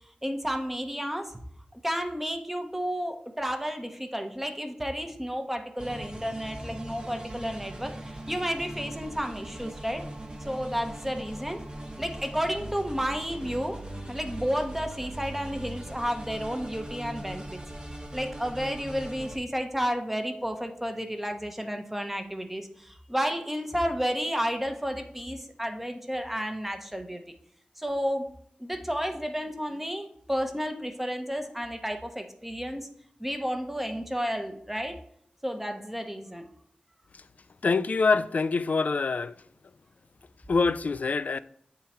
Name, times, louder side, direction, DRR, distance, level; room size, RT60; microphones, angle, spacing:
voice 1, 0.2-1.4 1.7-10.0 10.4-11.6 12.0-13.8 14.1-17.6 18.1-27.2 27.8-28.3 28.6-32.9 33.2-35.0 35.4-36.5, equal, 10° right, 0.9 m, -32 dB
sound 1, 5.8-19.4, right 1 dB, 30° right, 1.1 m, -40 dB
voice 2, 37.6-39.3 40.5-41.4, left 4 dB, 60° left, 0.3 m, -25 dB
8.1 x 3.8 x 4.3 m
wide cardioid pair, 70°, 3 cm